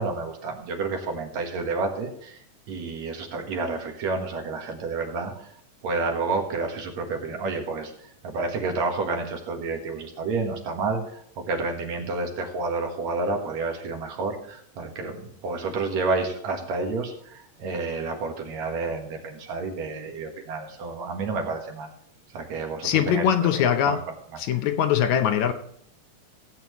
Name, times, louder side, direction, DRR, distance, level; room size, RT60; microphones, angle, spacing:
voice 1, 0.0-5.5 5.8-7.9 8.2-11.0 11.4-21.9 22.3-23.2 23.6-24.1, right 3 dB, 70° right, 2.7 m, -30 dB
voice 2, 22.8-24.0 24.4-25.5, left 9 dB, 75° left, 2.1 m, -22 dB
16.5 x 8.7 x 3.1 m
omnidirectional pair, 3.4 m